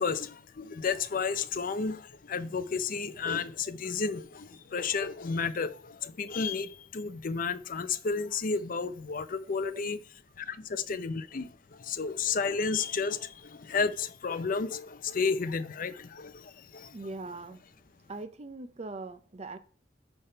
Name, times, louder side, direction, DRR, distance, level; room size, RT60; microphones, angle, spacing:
voice 1, 0.0-10.0 10.4-17.0, left 5 dB, 45° left, 0.5 m, -32 dB
voice 2, 9.4-9.8 16.9-17.6 18.1-19.6, right 3 dB, 35° right, 0.5 m, -41 dB
9.7 x 3.4 x 5.5 m
head